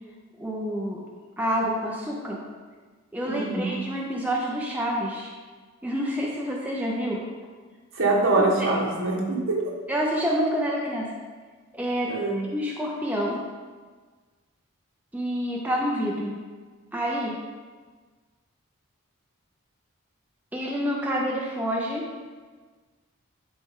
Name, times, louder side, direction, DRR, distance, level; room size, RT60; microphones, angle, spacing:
voice 1, 0.4-1.0 1.4-2.4 3.1-5.3 5.8-7.2 8.4-8.7 9.9-11.1 11.7-12.2 12.5-13.4 15.1-16.4 16.9-17.4 20.5-22.1, equal, 5° right, -3 dB, 0.7 m, -28 dB
voice 2, 3.2-3.8 7.9-9.7 12.1-12.4, right 2 dB, 70° right, -2 dB, 1.6 m, -24 dB
10.5 x 4.2 x 3.7 m, 1.4 s
head